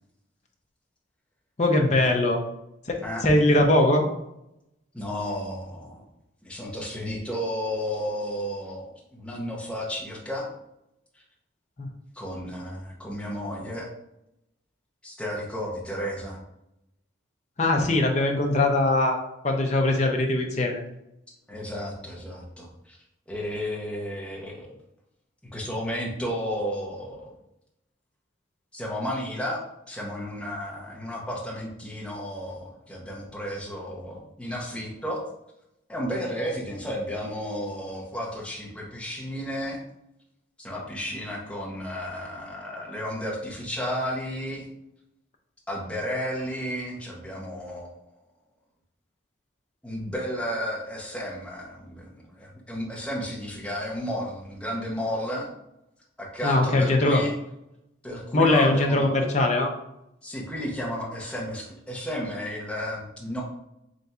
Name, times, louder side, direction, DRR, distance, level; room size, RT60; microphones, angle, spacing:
voice 1, 1.6-2.4 2.9-4.0 11.8-11.9 17.6-19.2 19.4-20.8 56.4-57.2 58.3-59.7, left 2 dB, 35° left, 2 dB, 0.5 m, -21 dB
voice 2, 4.9-6.0 6.4-10.5 12.1-13.9 15.0-16.4 21.5-23.0 23.3-24.7 25.5-27.2 28.7-35.2 35.9-39.8 40.6-44.7 45.7-47.9 49.8-55.5 56.2-57.3 58.0-59.1 60.2-63.4, equal, 5° left, -4 dB, 0.8 m, -33 dB
3.4 x 2.6 x 4.2 m, 0.83 s
head